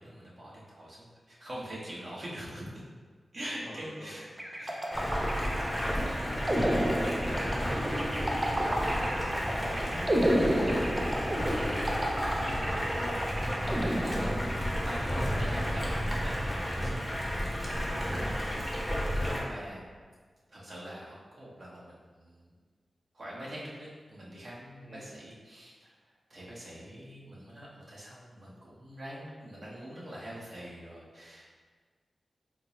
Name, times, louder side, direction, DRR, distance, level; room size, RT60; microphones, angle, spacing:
voice 1, 0.0-2.6 3.3-4.3 4.6-5.1 6.2-6.9 9.8-10.2 13.7-18.7 19.2-19.8 20.5-22.5 23.1-25.9 26.3-31.6, equal, 55° right, -7 dB, 1.1 m, -44 dB
voice 2, 3.6-4.2 6.3-10.4 11.1-13.3 18.3-18.7 24.9-25.0, left 1 dB, 60° left, -3 dB, 0.6 m, -44 dB
sound 1, 4.4-14.8, equal, 30° right, 0.5 m, -31 dB
Stream, 4.9-19.4, equal, 5° left, 0.8 m, -32 dB
4.2 x 2.0 x 3.0 m, 1.5 s
cardioid pair, 65°, 0 cm